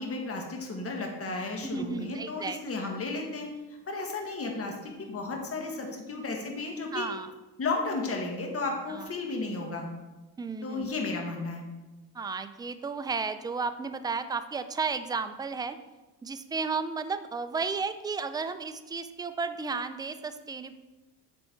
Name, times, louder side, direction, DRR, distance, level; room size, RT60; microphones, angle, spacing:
voice 1, 0.0-3.5 3.9-7.1 7.6-9.9 10.6-11.6, left 3 dB, 35° left, 1 dB, 1.6 m, -33 dB
voice 2, 1.6-2.6 6.9-7.3 8.9-9.1 10.4-10.9 12.1-15.8 16.2-20.7, right 4 dB, 10° right, 10 dB, 0.3 m, -33 dB
8.4 x 4.4 x 4.4 m, 1.1 s
cardioid pair, 95°, 42 cm